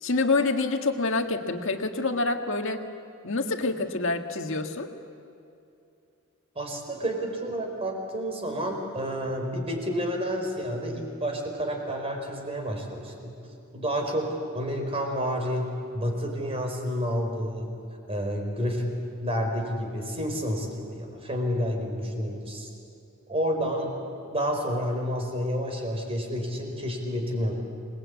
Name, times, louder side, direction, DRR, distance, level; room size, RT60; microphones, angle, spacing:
voice 1, 0.0-2.8 3.2-4.9, left 3 dB, 65° left, 5 dB, 1.8 m, -27 dB
voice 2, 6.6-13.3 13.7-17.7 18.1-18.9 19.2-22.7 23.3-24.0 24.3-27.5, equal, 30° right, 2 dB, 4.5 m, -30 dB
27.0 x 20.5 x 8.6 m, 2.7 s
head